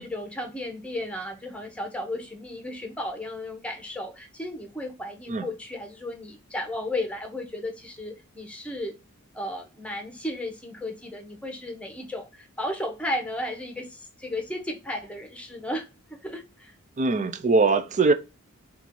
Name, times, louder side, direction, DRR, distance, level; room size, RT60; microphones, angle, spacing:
voice 1, 0.0-8.9 9.3-16.7, left 1 dB, 5° left, 0.9 m, -34 dB
voice 2, 17.0-18.1, right 3 dB, 35° right, 0.4 m, -21 dB
4.5 x 2.5 x 3.6 m
head